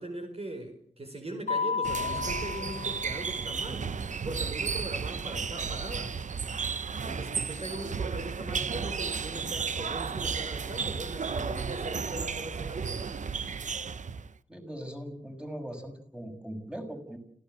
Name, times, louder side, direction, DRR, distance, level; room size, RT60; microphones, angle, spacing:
voice 1, 0.0-3.9 4.2-6.3 7.0-13.2, right 1 dB, 50° right, 4 dB, 4.9 m, -40 dB
Mallet percussion, 1.5-3.5, left 5 dB, 85° left, 0.9 m, -33 dB
sound 1, 1.8-14.3, right 5 dB, 70° right, 0.9 m, -33 dB
voice 2, 14.5-17.2, equal, 5° right, 4 dB, 6.4 m, -40 dB
27.0 x 16.5 x 7.9 m, 0.65 s
cardioid pair, 45°, 13 cm